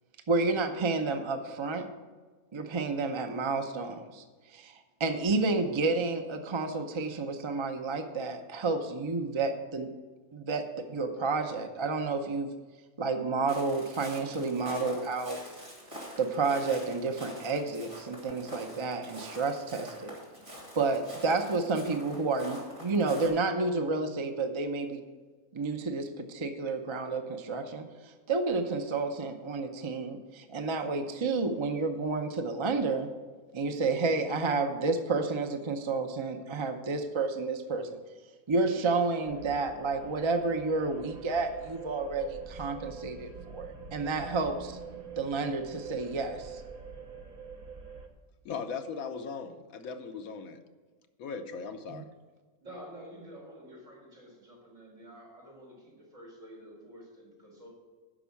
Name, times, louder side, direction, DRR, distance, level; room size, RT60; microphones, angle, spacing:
voice 1, 0.3-1.9 2.5-4.2 4.5-9.9 10.3-12.5 13.0-15.4 16.2-20.2 20.8-25.0 25.5-33.1 33.5-38.0 38.5-44.8 45.2-46.6 51.9-52.0, right 3 dB, 40° right, 6 dB, 0.4 m, -30 dB
Walk footsteps, 13.5-23.3, equal, 20° right, 2.5 m, -45 dB
sound 1, 39.2-48.1, right 6 dB, 75° right, 1.4 m, -45 dB
voice 2, 48.4-50.6 51.2-52.1, left 5 dB, 75° left, 8 dB, 1.2 m, -38 dB
voice 3, 52.6-57.7, equal, 60° right, -4 dB, 4.2 m, -49 dB
10.0 x 6.2 x 7.1 m, 1.4 s
omnidirectional pair, 1.5 m